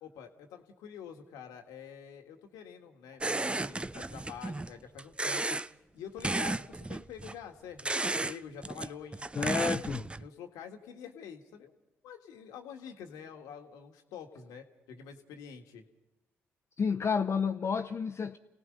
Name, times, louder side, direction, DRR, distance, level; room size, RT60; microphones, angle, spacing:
voice 1, 0.0-5.6 5.9-9.3 9.6-11.7 12.0-15.9, left 7 dB, 80° left, 1.8 m, -47 dB
sound 1, 3.2-4.7 5.0-5.7 6.2-7.3 7.8-8.4 8.6-10.3, right 2 dB, 15° right, 0.6 m, -33 dB
voice 2, 9.3-10.1 16.8-18.4, left 6 dB, 50° left, 0.9 m, -30 dB
29.5 x 18.0 x 5.4 m
hypercardioid pair, 45°, 6 cm